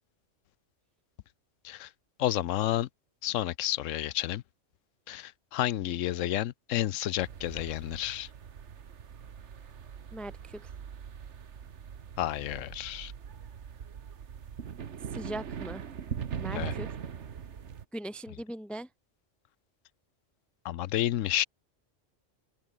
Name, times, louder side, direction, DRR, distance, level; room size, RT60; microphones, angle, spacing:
voice 1, 2.2-2.9 3.2-4.4 5.1-8.3 12.2-13.1 16.5-16.7 20.6-21.4, left 13 dB, 90° left, 1.0 m, -30 dB
sound 1, 7.2-17.8, right 7 dB, 70° right, 1.4 m, -41 dB
voice 2, 10.1-10.7 15.1-15.8 16.3-16.9 17.9-18.9, right 1 dB, ahead, 1.2 m, -39 dB
open air
omnidirectional pair, 1.3 m